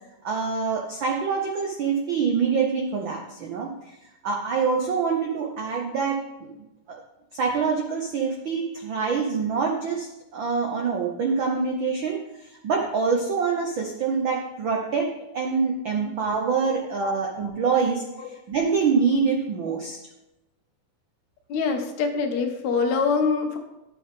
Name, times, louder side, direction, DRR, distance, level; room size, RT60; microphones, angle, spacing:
voice 1, 0.2-3.9 4.2-6.5 6.9-7.0 7.3-18.0 18.5-20.0, right 5 dB, 75° right, 1 dB, 1.1 m, -25 dB
voice 2, 21.5-23.6, left 5 dB, 70° left, 4 dB, 2.2 m, -24 dB
11.5 x 7.7 x 3.6 m, 0.95 s
omnidirectional pair, 3.4 m